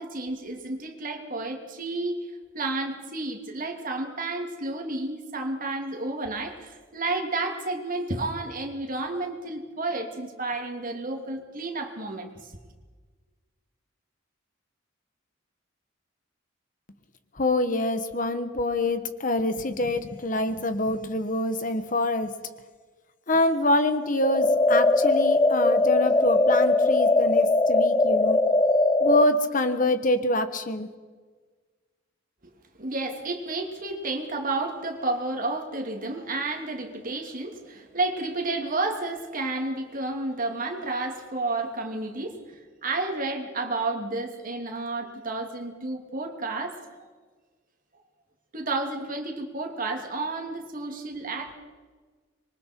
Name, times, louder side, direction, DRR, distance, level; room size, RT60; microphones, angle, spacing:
voice 1, 0.0-2.2 2.5-12.3 32.8-46.8 48.5-51.5, right 2 dB, 45° right, 3 dB, 2.8 m, -31 dB
voice 2, 17.4-22.3 23.3-28.4 29.0-30.9, left 1 dB, 40° left, 10 dB, 1.3 m, -25 dB
sound 1, 24.2-29.2, left 2 dB, 20° left, 0.5 m, -20 dB
26.0 x 23.0 x 4.6 m, 1.4 s
head